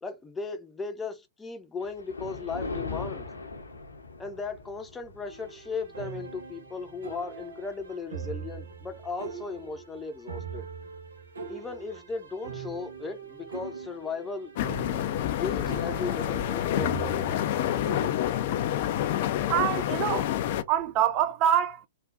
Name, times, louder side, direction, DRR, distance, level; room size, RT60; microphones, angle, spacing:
voice 1, 0.0-3.3 4.2-10.7 11.5-14.5 15.2-17.7, left 4 dB, 10° left, 0.8 m, -37 dB
Thunder, 1.8-10.3 10.8-11.1 11.8-11.9 12.2-12.3 14.5-14.7 15.0-15.1 15.3-21.3, left 3 dB, 85° left, 0.9 m, -44 dB
sound 1, 5.2-18.2, right 5 dB, 75° right, 0.9 m, -41 dB
sound 2, 14.6-20.6, left 11 dB, 50° left, 0.5 m, -28 dB
voice 2, 19.5-20.3 20.7-21.9, right 10 dB, 35° right, 0.4 m, -25 dB
3.6 x 2.4 x 2.5 m
figure-of-eight pair, 110°, 0 cm